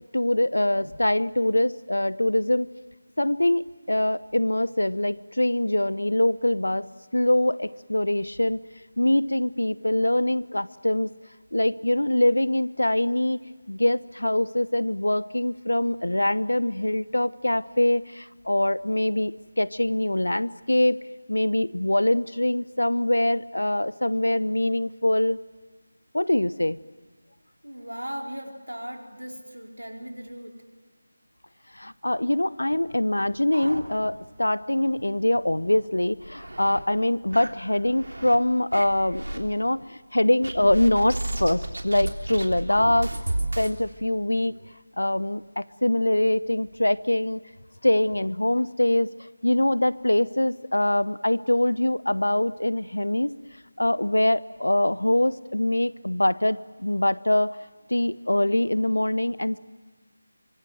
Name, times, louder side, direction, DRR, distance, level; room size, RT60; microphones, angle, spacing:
voice 1, 0.1-2.7 3.2-8.6 9.0-11.1 11.5-13.4 13.7-21.0 21.3-25.4 26.1-26.8 31.7-43.1 43.6-44.6 45.0-47.4 47.8-53.3 53.8-57.6 57.9-59.6, left 1 dB, 75° left, 18 dB, 0.9 m, -24 dB
voice 2, 27.6-30.6, equal, 85° right, 2 dB, 4.6 m, -37 dB
sound 1, 32.8-34.4 34.7-34.8 35.2-35.3 35.9-36.8 37.3-38.4 38.7-39.4 40.4-43.7, right 1 dB, 70° right, 3.4 m, -33 dB
25.0 x 24.0 x 9.3 m, 1.5 s
figure-of-eight pair, 160°, 0 cm